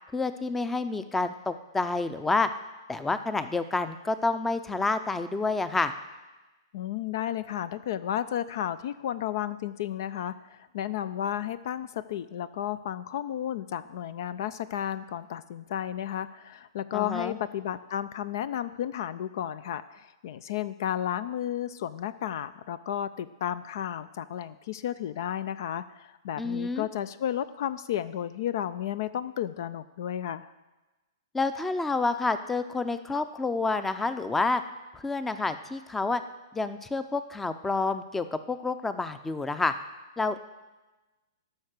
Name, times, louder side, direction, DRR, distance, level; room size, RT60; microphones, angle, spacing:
voice 1, 0.1-2.5 2.9-5.9 16.9-17.4 26.4-26.9 31.3-34.6 34.9-36.2 36.5-39.7 40.2-40.4, left 3 dB, 10° left, 11 dB, 0.6 m, -28 dB
voice 2, 6.7-30.5, left 11 dB, 60° left, 15 dB, 0.4 m, -33 dB
12.5 x 5.9 x 6.5 m, 1.1 s
hypercardioid pair, 120°, 2 cm